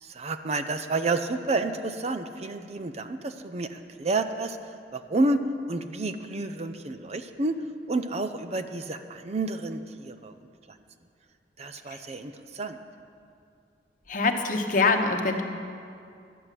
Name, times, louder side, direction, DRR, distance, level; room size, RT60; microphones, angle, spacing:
voice 1, 0.0-4.6 4.9-5.4 5.7-7.6 7.9-10.3 11.6-12.8, right 2 dB, 35° right, 8 dB, 0.6 m, -30 dB
voice 2, 14.1-15.4, left 3 dB, 50° left, 5 dB, 1.1 m, -24 dB
12.5 x 9.7 x 7.5 m, 2.4 s
head